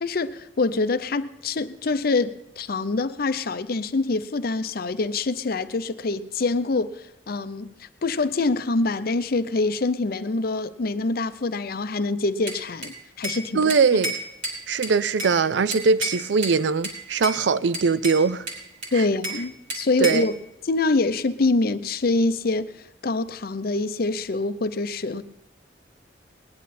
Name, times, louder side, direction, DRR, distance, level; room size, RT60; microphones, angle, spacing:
voice 1, 0.0-13.7 18.9-20.3 20.6-25.2, left 3 dB, 55° left, 0.6 m, -25 dB
Bell / Glass, 12.5-13.4 13.7-15.4 15.7-16.6 16.8-17.4 17.7-19.4 19.7-20.3, right 1 dB, 50° right, 3.5 m, -31 dB
voice 2, 13.5-14.1 14.7-18.5 18.9-19.0 20.0-20.3, right 5 dB, 75° right, 0.5 m, -21 dB
19.5 x 10.5 x 4.2 m
head